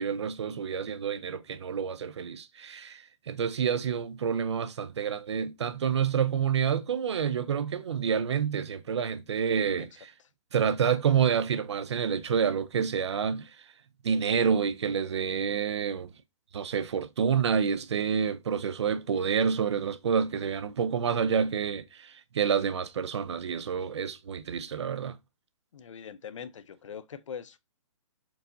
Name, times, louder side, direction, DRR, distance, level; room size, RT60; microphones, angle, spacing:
voice 1, 0.0-10.1 10.5-13.6 14.0-16.1 16.5-25.2, right 7 dB, 55° right, 0.4 m, -28 dB
voice 2, 25.7-27.6, left 7 dB, 65° left, 0.5 m, -42 dB
4.6 x 3.8 x 2.6 m
hypercardioid pair, 175°, 18 cm